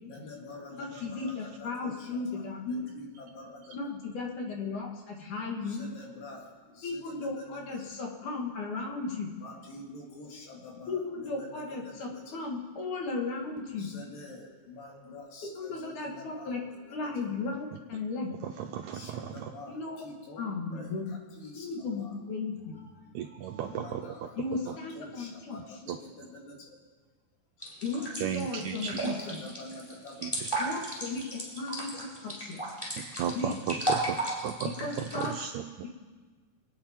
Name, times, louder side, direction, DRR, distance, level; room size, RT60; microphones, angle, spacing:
voice 1, 0.0-3.8 5.6-7.8 9.4-12.4 13.7-16.5 16.9-17.3 18.9-22.1 22.7-24.4 25.0-26.8 29.0-30.3, left 2 dB, 80° left, -1 dB, 4.0 m, -47 dB
voice 2, 0.8-2.8 3.7-5.9 6.8-9.3 10.9-13.9 15.4-16.6 16.9-18.3 19.7-20.0 20.4-21.1 21.6-22.8 24.4-25.8 27.6-29.4 30.6-32.6 33.3-33.5 34.8-35.4, left 3 dB, 65° left, 0 dB, 3.3 m, -35 dB
voice 3, 18.4-19.5 23.1-24.3 25.9-26.0 28.2-29.1 30.2-30.5 33.2-35.6, right 9 dB, 80° right, 5 dB, 1.7 m, -35 dB
sound 1, 27.6-35.3, right 1 dB, 5° left, 3.7 m, -34 dB
25.5 x 9.3 x 4.4 m, 1.4 s
omnidirectional pair, 3.9 m